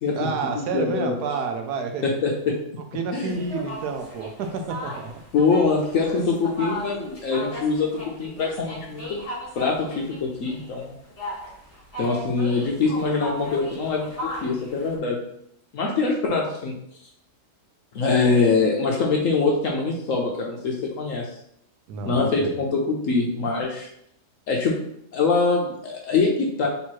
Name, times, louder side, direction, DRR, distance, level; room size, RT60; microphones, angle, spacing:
voice 1, 0.1-2.0 2.9-5.2 21.9-22.6, right 5 dB, 75° right, 5 dB, 1.0 m, -29 dB
voice 2, 0.7-1.2 2.0-2.6 3.1-3.4 5.3-9.2 9.6-10.9 12.0-15.2 15.7-16.7 17.9-21.3 22.0-23.9 24.5-24.7 25.1-26.7, left 4 dB, 65° left, -1 dB, 0.8 m, -23 dB
sound 1, 3.3-15.0, left 1 dB, 25° left, 0.9 m, -37 dB
3.3 x 3.0 x 4.5 m, 0.73 s
omnidirectional pair, 1.8 m